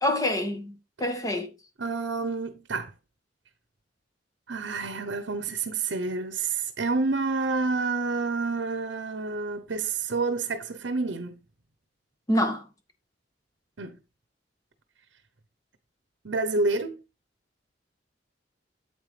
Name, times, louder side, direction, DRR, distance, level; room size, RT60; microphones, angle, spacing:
voice 1, 0.0-1.5 12.3-12.6, left 1 dB, 20° left, 1.7 m, -26 dB
voice 2, 1.8-2.9 4.5-11.4 13.8-14.0 16.2-17.0, right 3 dB, 70° right, 0.9 m, -29 dB
8.8 x 8.1 x 3.3 m
head